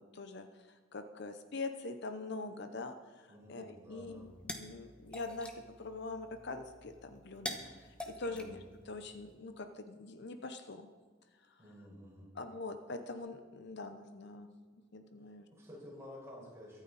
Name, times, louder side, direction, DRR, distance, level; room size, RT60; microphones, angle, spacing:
voice 1, 0.0-10.9 12.3-14.5 14.9-15.5, left 3 dB, 60° left, 8 dB, 0.8 m, -44 dB
voice 2, 3.3-4.3 8.2-8.5 11.6-12.3 15.2-16.8, left 1 dB, 15° right, -5 dB, 5.3 m, -52 dB
sound 1, 4.0-9.3, left 1 dB, 5° left, 1.3 m, -47 dB
23.0 x 9.1 x 4.2 m, 1.5 s
head